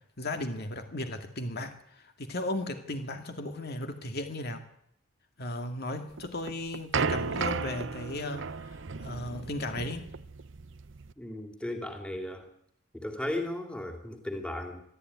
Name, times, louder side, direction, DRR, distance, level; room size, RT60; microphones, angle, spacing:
voice 1, 0.2-4.6 5.4-10.1, left 1 dB, 50° left, 6 dB, 2.2 m, -36 dB
sound 1, 6.2-11.1, right 5 dB, 60° right, 0.8 m, -34 dB
voice 2, 11.2-12.5 12.9-14.8, left 1 dB, 5° left, 4 dB, 2.8 m, -36 dB
23.5 x 13.5 x 9.6 m, 0.73 s
head